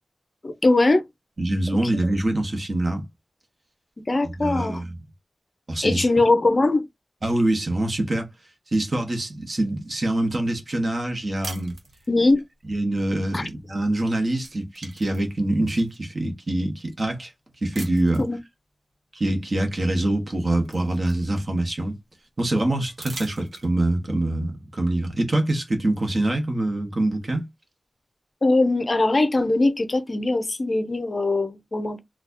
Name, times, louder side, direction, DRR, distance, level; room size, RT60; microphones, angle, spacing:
voice 1, 0.4-1.0 4.1-4.8 5.8-6.8 12.1-12.4 13.3-13.5 18.2-18.4 28.4-32.0, left 2 dB, 40° left, 0.5 m, -21 dB
voice 2, 1.4-3.0 4.2-5.0 5.7-6.1 7.2-8.3 8.7-11.7 12.7-17.3 17.6-18.3 19.1-22.0 22.4-27.5, right 1 dB, 40° right, 1.0 m, -25 dB
sound 1, 11.4-12.4 13.8-14.0 14.3-16.0 16.6-16.7 17.7-18.3 19.8-19.9 20.3-21.8 22.9-24.0, right 2 dB, 80° right, 1.1 m, -42 dB
4.1 x 2.3 x 2.5 m
wide cardioid pair, 105°, 0 cm